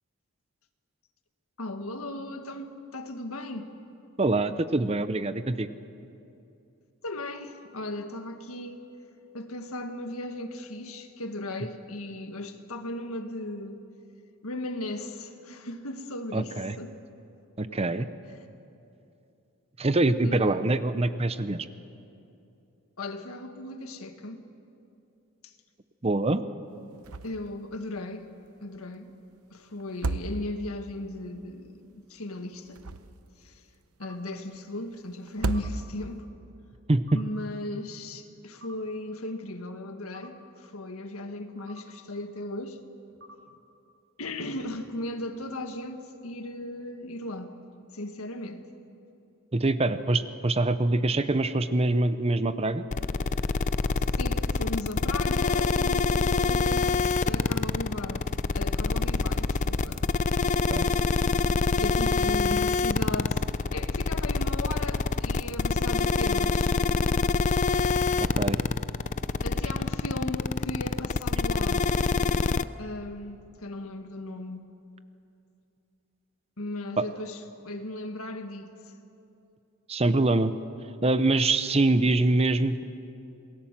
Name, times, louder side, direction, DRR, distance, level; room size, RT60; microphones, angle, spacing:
voice 1, 1.6-3.7 7.0-8.8 9.3-13.8 14.4-17.0 17.7-17.8 20.2-20.6 23.0-24.4 25.4-25.5 27.2-28.3 28.6-29.1 29.5-32.8 33.4-33.6 34.0-36.3 37.1-42.8 44.2-47.5 47.9-48.7 54.1-58.3 58.5-60.0 61.8-63.4 63.7-66.8 69.4-71.9 72.8-74.7 76.6-78.7, left 1 dB, 75° left, 1.7 m, -37 dB
voice 2, 4.2-5.7 16.3-16.8 17.6-18.1 19.8-21.7 26.0-26.4 36.9-37.2 49.5-52.8 60.7-60.9 68.2-68.6 77.0-77.1 79.9-80.5 81.0-82.8, right 2 dB, 30° right, 0.7 m, -24 dB
sound 1, 27.0-27.5 27.8-27.9 29.8-30.8 32.5-33.4 35.3-36.2, right 3 dB, 80° right, 0.9 m, -33 dB
sound 2, 34.0-34.2 35.5-35.7 37.1-37.3 38.6-38.8 40.1-40.3 41.7-41.9 43.2-43.4, equal, 55° right, 3.2 m, -49 dB
sound 3, 52.9-72.6, left 4 dB, 35° left, 0.5 m, -25 dB
28.0 x 20.0 x 7.4 m
head